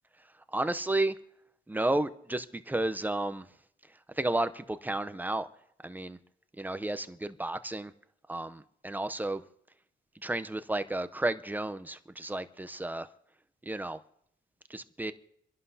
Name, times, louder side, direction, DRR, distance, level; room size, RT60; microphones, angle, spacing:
voice 1, 0.5-1.2 1.7-3.5 4.2-5.5 5.8-6.2 6.6-7.9 8.3-9.4 10.2-13.1 13.7-14.0 14.7-15.1, right 2 dB, 10° right, 0.7 m, -32 dB
28.5 x 11.0 x 2.8 m
cardioid pair, 90°, 20 cm